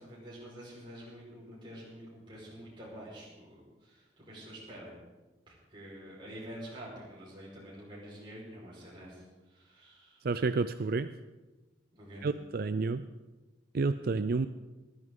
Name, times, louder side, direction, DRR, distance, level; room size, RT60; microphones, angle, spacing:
voice 1, 0.0-4.9 5.7-9.2 9.5-10.2 11.9-12.2, equal, 30° right, -6 dB, 5.0 m, -47 dB
voice 2, 10.2-11.1 12.2-13.1 13.7-14.5, right 4 dB, 55° right, 12 dB, 0.5 m, -30 dB
20.0 x 12.5 x 3.8 m, 1.1 s
head